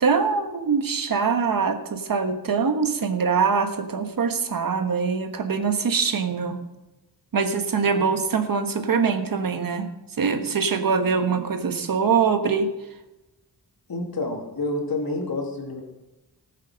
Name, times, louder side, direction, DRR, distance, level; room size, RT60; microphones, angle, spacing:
voice 1, 0.0-6.6 7.3-9.9 10.2-12.7, right 5 dB, 60° right, 8 dB, 1.4 m, -23 dB
voice 2, 13.9-15.8, left 2 dB, 65° left, 1 dB, 3.0 m, -29 dB
18.5 x 7.5 x 6.4 m, 1.0 s
wide cardioid pair, 180°, 39 cm